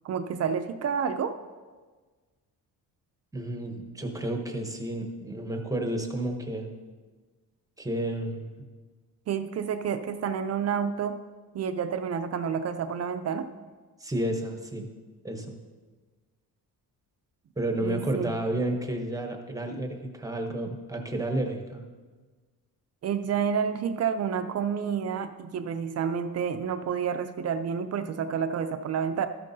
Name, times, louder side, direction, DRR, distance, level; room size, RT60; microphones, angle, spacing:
voice 1, 0.0-1.4 9.3-11.2 11.5-13.5 17.8-18.3 23.0-29.3, right 7 dB, 45° right, 9 dB, 0.4 m, -29 dB
voice 2, 3.3-6.7 7.8-8.6 14.0-14.9 15.2-15.5 17.6-21.8, right 1 dB, 10° right, 3 dB, 0.8 m, -31 dB
13.5 x 9.1 x 2.7 m, 1.4 s
cardioid pair, 165°, 36 cm